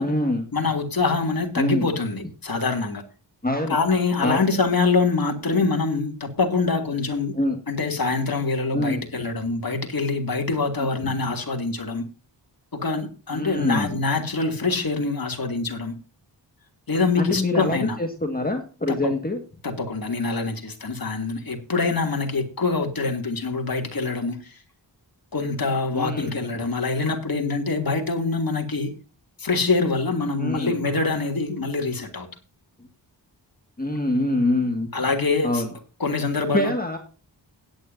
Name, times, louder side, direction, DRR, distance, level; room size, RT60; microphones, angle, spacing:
voice 1, 0.0-0.4 1.6-1.8 3.4-3.8 4.2-4.4 7.3-7.6 8.7-9.0 11.0-11.1 13.3-14.0 17.2-19.4 25.9-26.3 30.4-30.8 33.8-34.9 35.4-35.7 36.5-37.0, left 1 dB, 20° left, 2.0 m, -24 dB
voice 2, 0.5-3.0 3.7-7.3 7.7-12.0 12.7-15.9 16.9-18.0 18.9-19.1 19.6-24.6 25.3-28.9 29.4-32.3 34.9-35.6 36.0-36.7, left 3 dB, 50° left, 2.9 m, -25 dB
17.0 x 9.8 x 2.7 m
wide cardioid pair, 70°, 43 cm